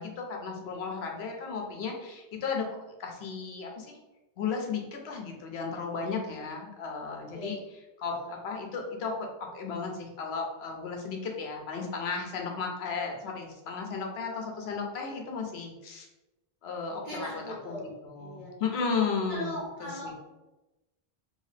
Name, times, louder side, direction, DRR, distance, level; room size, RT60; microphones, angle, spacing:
voice 1, 0.0-2.7 3.0-4.0 4.4-16.1 16.6-20.1, left 5 dB, 85° left, 1 dB, 0.9 m, -34 dB
voice 2, 7.0-7.5 8.0-8.3 17.0-18.5 19.3-20.1, equal, 30° left, -8 dB, 1.4 m, -40 dB
3.1 x 2.7 x 3.3 m, 1.0 s
omnidirectional pair, 1.1 m